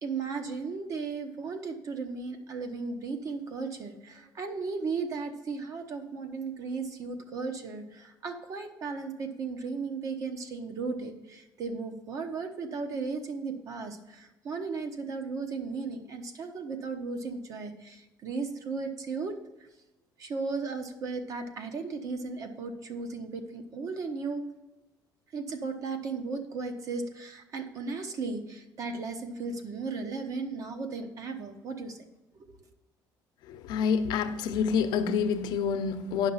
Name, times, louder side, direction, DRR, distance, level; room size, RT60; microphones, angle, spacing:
voice 1, 0.0-19.4 20.2-24.4 25.3-32.0, right 4 dB, 45° right, 1.0 m, -35 dB
voice 2, 33.5-36.3, left 6 dB, 70° left, 0.8 m, -27 dB
9.5 x 5.8 x 5.5 m
cardioid pair, 155°, 8 cm